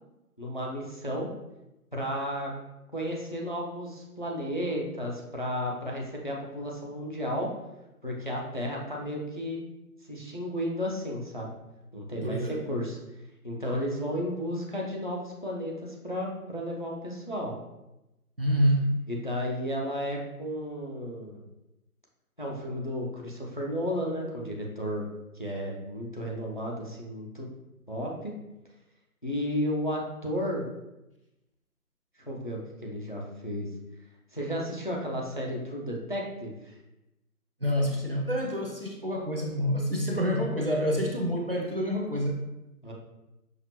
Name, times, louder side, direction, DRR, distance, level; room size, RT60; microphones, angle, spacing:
voice 1, 0.4-1.3 1.9-2.5 2.9-7.5 8.0-9.6 10.1-11.6 11.9-13.0 13.4-17.5 19.1-21.4 22.4-25.1 25.3-27.5 27.9-28.3 29.2-30.7 32.2-33.7 34.3-36.7 42.8-42.9, equal, 35° left, -2 dB, 0.5 m, -33 dB
voice 2, 12.2-12.6 18.4-18.9 37.6-42.4, equal, 40° right, -1 dB, 0.5 m, -27 dB
5.8 x 2.4 x 2.9 m, 0.95 s
figure-of-eight pair, 145°, 45 cm